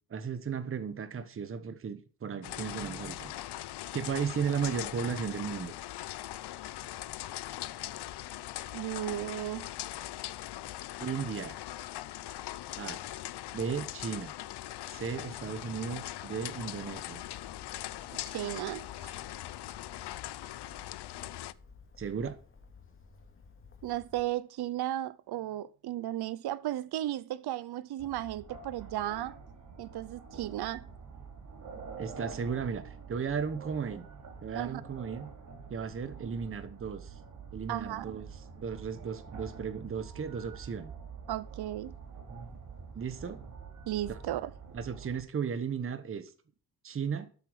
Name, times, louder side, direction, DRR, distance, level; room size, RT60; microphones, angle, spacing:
voice 1, 0.1-3.3 3.9-5.7 11.0-11.6 12.7-13.0 13.5-14.3 14.9-17.2 22.0-22.4 32.0-34.1 34.4-35.3 35.7-37.2 37.5-38.3 38.5-40.9 42.9-43.4 44.1-44.2 44.7-46.3 46.8-47.3, right 6 dB, 35° right, 1.2 m, -35 dB
sound 1, 2.4-21.5, left 14 dB, 80° left, 0.7 m, -41 dB
voice 2, 8.7-9.7 18.3-19.1 23.8-29.3 29.8-30.8 34.5-34.8 37.7-38.1 41.3-41.9 43.9-44.5, right 13 dB, 70° right, 0.7 m, -35 dB
Bird, 16.7-24.3, left 4 dB, 30° left, 2.3 m, -56 dB
sound 2, 28.0-45.2, right 5 dB, 50° right, 3.2 m, -47 dB
13.0 x 7.7 x 4.8 m
wide cardioid pair, 170°, 39 cm